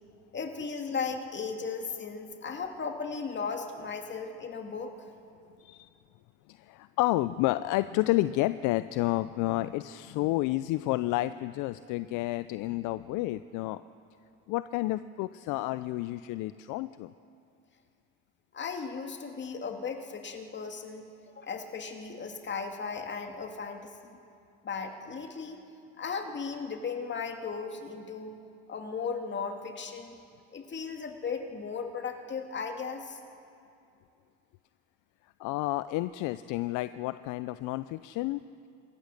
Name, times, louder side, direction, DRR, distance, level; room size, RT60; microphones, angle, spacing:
voice 1, 0.3-4.9 18.5-24.2 24.6-25.6 26.0-28.4 28.7-30.2 30.5-33.2, left 5 dB, 35° left, 4 dB, 2.4 m, -36 dB
voice 2, 5.6-5.9 6.5-13.8 14.5-17.1 35.4-38.7, left 17 dB, 65° left, 14 dB, 0.5 m, -30 dB
27.0 x 14.5 x 6.6 m, 2.5 s
supercardioid pair, 85°, 33 cm